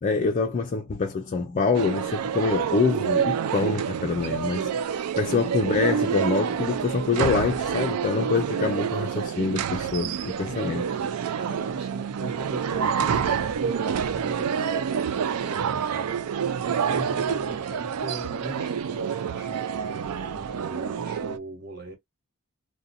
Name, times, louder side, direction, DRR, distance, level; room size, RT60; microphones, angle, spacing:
voice 1, 0.0-10.8, left 4 dB, 35° left, 0.4 m, -26 dB
sound 1, 1.7-21.4, right 7 dB, 75° right, 0.4 m, -28 dB
voice 2, 10.4-22.0, right 1 dB, 50° right, 1.2 m, -40 dB
2.5 x 2.2 x 2.6 m
head